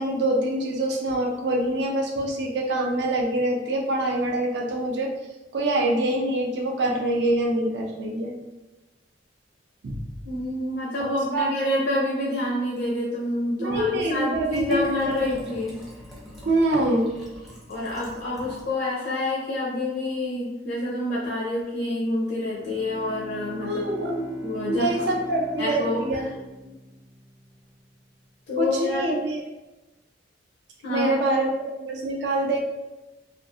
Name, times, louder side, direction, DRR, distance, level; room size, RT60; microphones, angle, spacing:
voice 1, 0.0-5.1 5.5-8.3 9.8-10.0 11.0-11.5 13.6-15.4 16.5-17.1 23.6-24.3 24.7-26.3 26.6-26.7 28.6-29.4 30.9-32.6, right 1 dB, 60° right, 0 dB, 0.4 m, -25 dB
voice 2, 10.2-15.8 17.7-23.8 24.4-24.8 25.6-26.3 28.5-29.1 30.8-31.1, left 1 dB, 55° left, -5 dB, 0.5 m, -27 dB
Liquid, 14.5-18.7 19.0-19.1, equal, ahead, 0.5 m, -43 dB
Bowed string instrument, 22.5-27.6, equal, 40° right, 0.8 m, -39 dB
2.5 x 2.4 x 2.3 m, 1.1 s
head